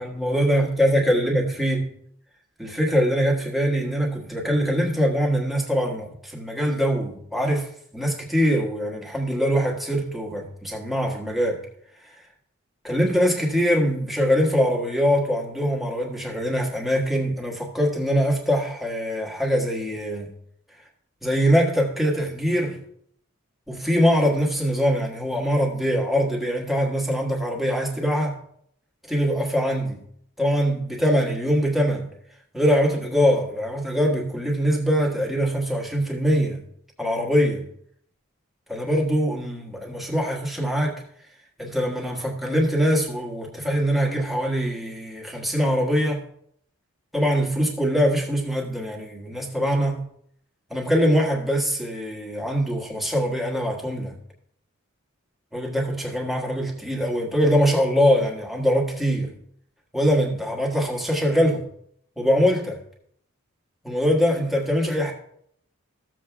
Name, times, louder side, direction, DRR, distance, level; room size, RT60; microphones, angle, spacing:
voice 1, 0.0-1.9 2.6-11.6 12.0-12.1 12.8-20.3 21.2-22.8 23.7-28.4 29.1-30.0 30.4-32.1 32.5-36.6 37.0-37.7 38.7-41.0 41.6-46.3 47.1-50.0 50.7-54.1 55.5-59.3 59.9-61.6 62.2-62.8 63.8-65.1, equal, ahead, -2 dB, 1.6 m, -23 dB
15.0 x 7.5 x 2.4 m, 0.67 s
head